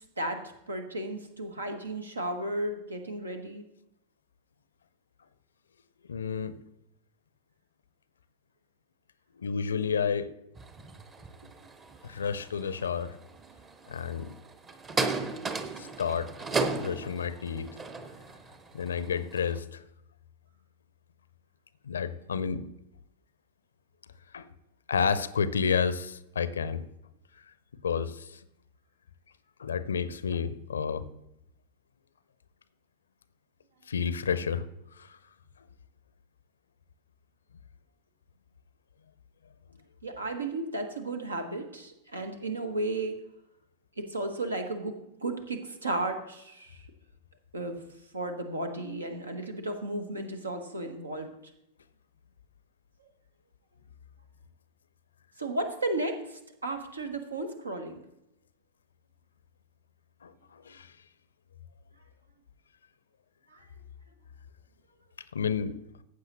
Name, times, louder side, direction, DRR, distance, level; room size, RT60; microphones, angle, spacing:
voice 1, 0.2-3.6 40.0-43.2 44.0-46.8 47.5-47.8 48.1-51.3 55.4-58.0 63.5-63.6, right 2 dB, 75° right, 6 dB, 1.3 m, -34 dB
voice 2, 6.1-6.6 9.4-10.3 12.0-13.2 13.9-14.3 15.8-16.3 16.7-17.7 18.7-19.8 21.8-22.7 24.3-24.5 24.9-26.8 27.8-28.4 29.6-31.1 33.9-34.6 34.9-35.2 60.2-60.9 65.3-65.8, left 6 dB, 70° left, 16 dB, 0.6 m, -30 dB
sound 1, 10.6-19.6, right 3 dB, 20° right, 0.9 m, -36 dB
14.5 x 7.7 x 3.0 m, 0.82 s
figure-of-eight pair, 90°, 0 cm